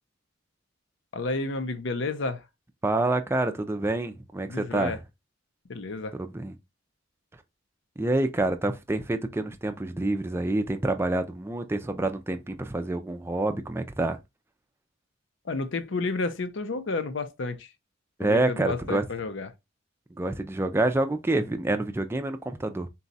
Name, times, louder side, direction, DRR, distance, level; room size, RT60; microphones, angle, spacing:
voice 1, 1.1-2.4 4.5-5.0 5.7-6.2 15.5-17.7 18.2-19.5, left 3 dB, 65° left, 0.6 m, -31 dB
voice 2, 2.8-5.0 6.1-6.6 8.0-14.2 18.2-19.0 20.2-22.9, right 2 dB, 10° right, 0.4 m, -27 dB
4.0 x 2.3 x 3.9 m
head